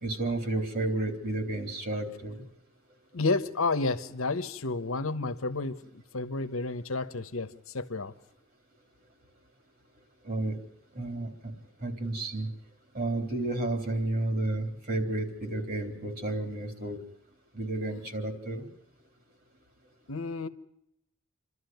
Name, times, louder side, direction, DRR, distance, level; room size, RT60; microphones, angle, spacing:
voice 1, 0.0-2.4 10.2-10.5 11.0-11.5 11.8-12.5 12.9-17.0 17.5-18.7, right 2 dB, 45° right, 3.7 m, -31 dB
voice 2, 3.1-8.1 20.1-20.5, left 3 dB, 85° left, 1.2 m, -31 dB
29.0 x 12.5 x 9.4 m
head